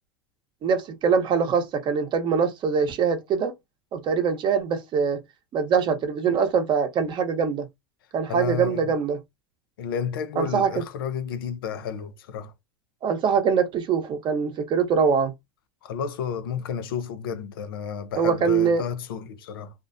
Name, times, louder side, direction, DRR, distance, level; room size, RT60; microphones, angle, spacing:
voice 1, 0.6-3.5 3.9-5.2 5.5-7.7 8.1-9.2 10.4-10.8 13.0-15.3 18.2-18.8, right 6 dB, 40° right, 0.8 m, -23 dB
voice 2, 8.3-8.8 9.8-12.5 15.8-19.7, left 7 dB, 80° left, 0.5 m, -31 dB
2.5 x 2.0 x 2.5 m
hypercardioid pair, 90°, 12 cm